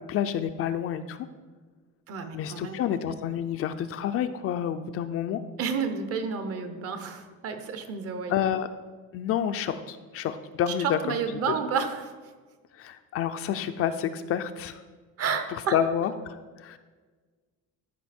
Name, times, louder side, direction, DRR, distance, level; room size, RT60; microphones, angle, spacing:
voice 1, 0.1-1.3 2.3-5.4 8.3-8.7 9.1-11.2 12.8-14.8 15.7-16.8, left 9 dB, 45° left, 10 dB, 0.4 m, -29 dB
voice 2, 2.1-2.8 5.6-8.6 10.7-12.1 15.2-15.7, right 6 dB, 45° right, 8 dB, 0.9 m, -31 dB
14.0 x 5.3 x 4.3 m, 1.4 s
cardioid pair, 165°, 32 cm